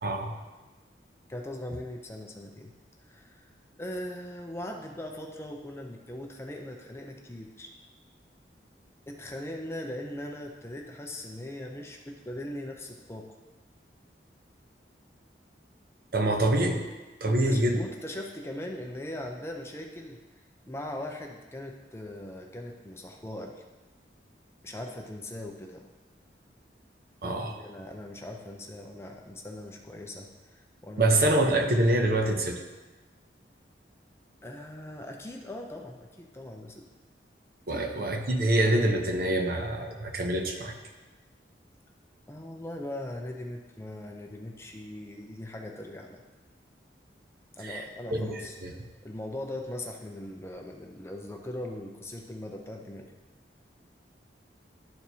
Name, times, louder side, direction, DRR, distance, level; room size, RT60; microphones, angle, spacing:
voice 1, 0.0-0.3 16.1-16.8 17.2-17.8 27.2-27.6 31.0-32.6 37.7-40.7 47.6-47.8 48.1-48.7, right 1 dB, 55° right, 3 dB, 0.7 m, -25 dB
voice 2, 1.3-2.7 3.1-3.5 3.8-7.7 9.1-13.4 17.3-20.2 20.6-23.6 24.6-25.9 27.2-31.2 34.4-36.9 37.7-37.9 42.3-46.2 47.5-48.6 49.0-53.1, left 1 dB, 15° left, 2 dB, 0.5 m, -40 dB
11.5 x 4.5 x 2.7 m, 1.2 s
head